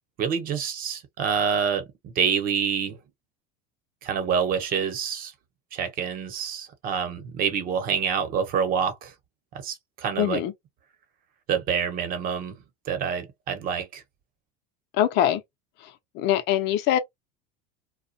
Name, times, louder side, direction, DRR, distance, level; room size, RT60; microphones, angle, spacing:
voice 1, 0.2-3.0 4.0-5.3 5.7-9.1 9.6-10.4 11.5-12.6 12.9-14.0, right 7 dB, 45° right, 0.9 m, -27 dB
voice 2, 10.2-10.5 15.0-15.4 16.1-17.0, left 11 dB, 55° left, 0.6 m, -22 dB
2.4 x 2.2 x 2.7 m
supercardioid pair, 105°, 21 cm